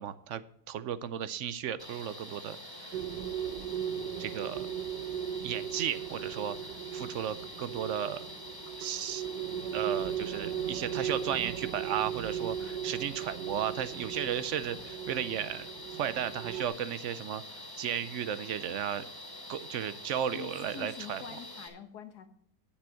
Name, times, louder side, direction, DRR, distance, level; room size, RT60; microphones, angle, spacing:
voice 1, 0.0-3.0 4.2-4.7 5.4-6.6 6.9-8.3 8.8-9.2 9.7-17.4 17.8-19.0 19.5-21.2, right 9 dB, 65° right, 15 dB, 0.8 m, -34 dB
sound 1, 1.8-21.7, left 1 dB, 15° left, 2.4 m, -46 dB
sound 2, 2.9-16.7, right 9 dB, 85° right, 1.3 m, -37 dB
voice 2, 20.3-22.3, left 8 dB, 85° left, 8 dB, 1.7 m, -45 dB
10.5 x 7.0 x 6.3 m, 0.67 s
omnidirectional pair, 1.7 m